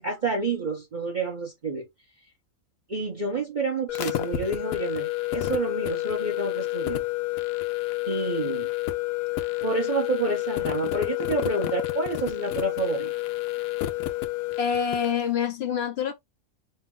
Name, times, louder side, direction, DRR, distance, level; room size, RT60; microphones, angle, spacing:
voice 1, 0.0-1.8 2.9-7.0 8.1-8.7 9.6-13.1, right 3 dB, 35° right, 1.0 m, -29 dB
sound 1, 3.9-15.2, left 16 dB, 85° left, 1.1 m, -29 dB
voice 2, 14.6-16.1, left 7 dB, 55° left, 0.9 m, -26 dB
5.3 x 2.2 x 3.6 m
omnidirectional pair, 1.4 m